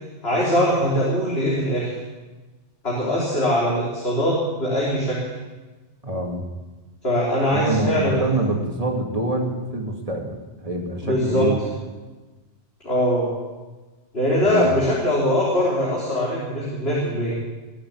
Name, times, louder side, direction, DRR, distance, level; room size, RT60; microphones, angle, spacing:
voice 1, 0.2-1.9 2.8-5.3 7.0-8.2 11.0-11.5 12.8-13.3 14.1-17.4, equal, 60° left, -6 dB, 3.8 m, -22 dB
voice 2, 6.0-6.4 7.5-11.6 14.4-14.7, right 2 dB, 30° right, 1 dB, 2.4 m, -25 dB
21.0 x 7.4 x 9.4 m, 1.2 s
omnidirectional pair, 1.2 m